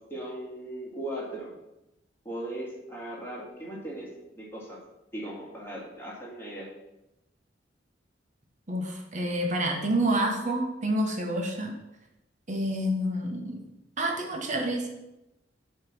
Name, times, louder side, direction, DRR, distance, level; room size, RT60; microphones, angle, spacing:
voice 1, 0.0-1.5 2.2-4.8 5.1-6.7, right 1 dB, 15° left, -5 dB, 2.2 m, -38 dB
voice 2, 8.7-11.8 12.5-13.6 14.0-14.9, right 1 dB, 40° right, 2 dB, 1.3 m, -28 dB
8.5 x 3.3 x 6.0 m, 0.93 s
head